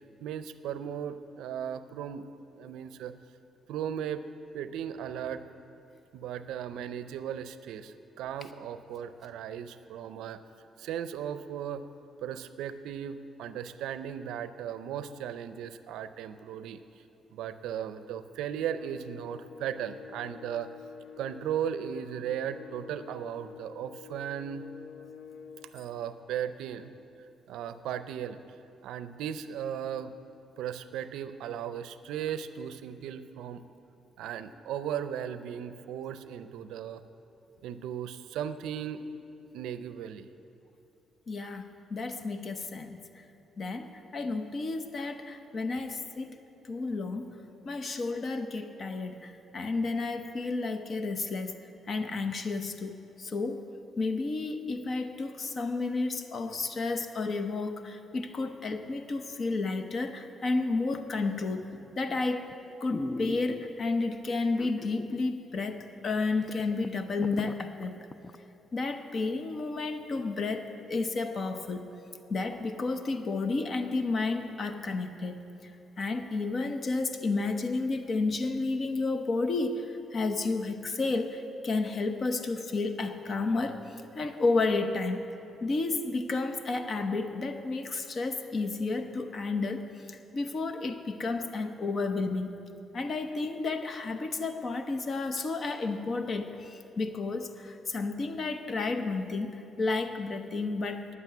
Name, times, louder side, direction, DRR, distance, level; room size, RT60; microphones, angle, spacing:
voice 1, 0.2-2.3 2.6-3.1 3.7-4.2 4.5-5.4 6.1-10.4 10.8-11.8 12.2-16.8 17.3-20.7 21.2-24.6 25.7-26.9 27.5-28.4 28.8-30.1 30.6-33.6 34.2-37.0 37.6-39.0 39.5-40.3, right 9 dB, 90° right, 12 dB, 0.5 m, -36 dB
sound 1, 18.7-25.8, left 7 dB, 75° left, 0.6 m, -48 dB
voice 2, 41.3-43.0 43.6-46.4 46.6-47.4 47.6-51.6 51.9-53.7 54.0-62.5 62.8-68.1 68.7-71.9 72.3-75.7 76.0-85.2 85.6-92.5 92.9-101.1, left 3 dB, 45° left, 8 dB, 0.9 m, -31 dB
sound 2, 61.7-62.1 62.5-62.6 62.9-63.9 64.6-65.3 65.6-65.7 66.2-66.3 66.5-68.4 68.8-68.9, left 2 dB, 25° left, 0.4 m, -39 dB
9.5 x 8.2 x 9.0 m, 2.8 s
cardioid pair, 90°, 0 cm